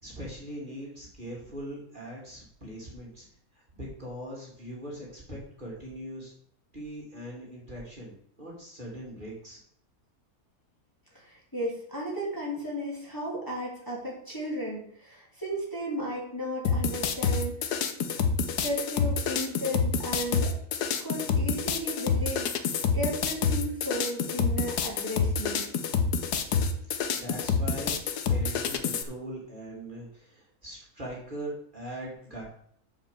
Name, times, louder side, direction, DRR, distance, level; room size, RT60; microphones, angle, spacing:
voice 1, 0.0-3.3 3.5-6.3 6.7-9.6 26.8-28.0 28.3-32.4, equal, 30° right, -4 dB, 2.6 m, -41 dB
voice 2, 11.1-17.6 18.6-20.5 21.0-22.5 22.9-25.6, equal, 15° left, -5 dB, 2.8 m, -34 dB
sound 1, 16.6-29.0, left 5 dB, 80° left, 1.4 m, -27 dB
7.4 x 5.7 x 7.0 m, 0.65 s
omnidirectional pair, 1.6 m